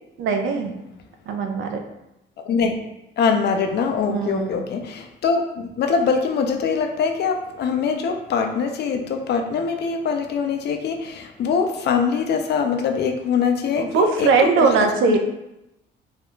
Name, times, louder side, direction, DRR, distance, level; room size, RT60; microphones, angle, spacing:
voice 1, 0.2-0.8 1.3-1.8 4.1-4.6 13.8-15.2, right 4 dB, 75° right, 4 dB, 0.4 m, -20 dB
voice 2, 2.5-2.8 3.2-14.3 14.6-14.8 15.1-15.2, left 5 dB, 55° left, 5 dB, 0.4 m, -23 dB
2.4 x 2.1 x 3.0 m, 0.90 s
cardioid pair, 90°, 20 cm